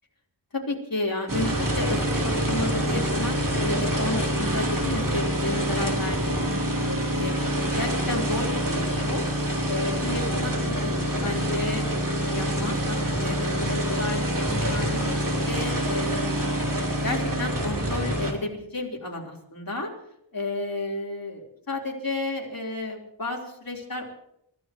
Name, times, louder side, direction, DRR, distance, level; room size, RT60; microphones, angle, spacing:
voice 1, 0.5-7.3 7.7-9.2 9.7-11.9 12.1-16.5 17.0-19.9 20.3-24.0, left 2 dB, 50° left, -1 dB, 4.0 m, -32 dB
sound 1, 1.3-18.3, equal, 45° right, 3.3 m, -26 dB
29.0 x 15.5 x 3.1 m, 0.77 s
wide cardioid pair, 65°, 45 cm